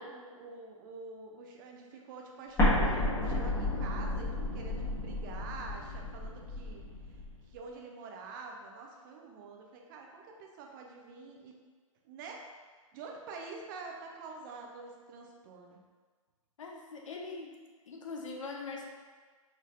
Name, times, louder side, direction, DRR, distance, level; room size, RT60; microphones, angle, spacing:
voice 1, 0.0-6.9 7.5-11.6 12.0-12.4 12.9-15.8, right 4 dB, 35° right, 1 dB, 0.7 m, -47 dB
Explosion, 2.6-7.3, left 1 dB, 15° left, 1.5 m, -31 dB
voice 2, 16.6-17.6 17.9-18.9, left 4 dB, 65° left, 0 dB, 0.9 m, -42 dB
4.7 x 4.3 x 2.6 m, 1.5 s
figure-of-eight pair, 120°, 18 cm